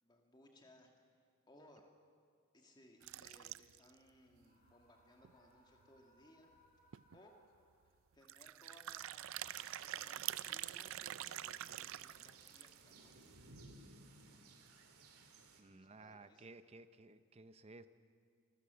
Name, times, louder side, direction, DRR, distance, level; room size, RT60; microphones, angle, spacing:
voice 1, 0.0-1.2 1.5-1.9 2.5-6.5 7.1-7.3 7.8-13.4 15.7-16.5, left 1 dB, 20° left, 2 dB, 2.2 m, -65 dB
sound 1, 3.0-3.9 4.4-4.5 4.7-4.8 5.2-5.3 6.6-6.7 6.9-7.2 8.2-12.9, right 13 dB, 60° right, 0.4 m, -46 dB
Screaming, 4.4-8.0, left 1 dB, 35° left, 6.5 m, -72 dB
sound 2, 9.3-15.6, right 3 dB, 85° right, 2.3 m, -60 dB
voice 2, 15.6-17.9, right 3 dB, 30° right, 12 dB, 0.7 m, -56 dB
26.0 x 15.0 x 7.0 m, 2.2 s
head